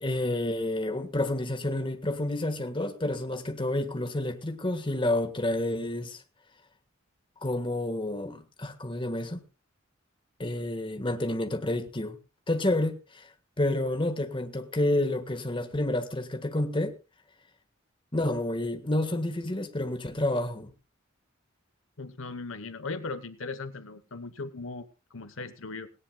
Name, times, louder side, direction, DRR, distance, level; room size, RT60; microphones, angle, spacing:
voice 1, 0.0-6.2 7.4-9.4 10.4-12.2 12.5-13.3 13.6-16.9 18.1-20.7, left 1 dB, 25° left, 1.5 m, -29 dB
voice 2, 22.0-25.9, left 3 dB, 70° left, 1.1 m, -38 dB
18.0 x 18.0 x 2.3 m
head